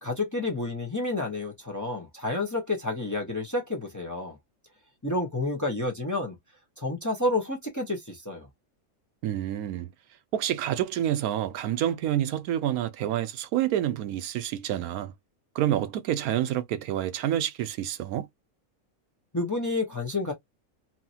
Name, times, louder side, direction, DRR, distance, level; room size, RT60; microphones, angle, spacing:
voice 1, 0.0-4.4 5.0-6.3 6.8-8.5 19.3-20.3, left 2 dB, 15° left, 0.8 m, -30 dB
voice 2, 9.2-9.9 10.3-15.1 15.5-18.3, right 11 dB, 80° right, 1.0 m, -28 dB
2.9 x 2.8 x 2.7 m
omnidirectional pair, 1.5 m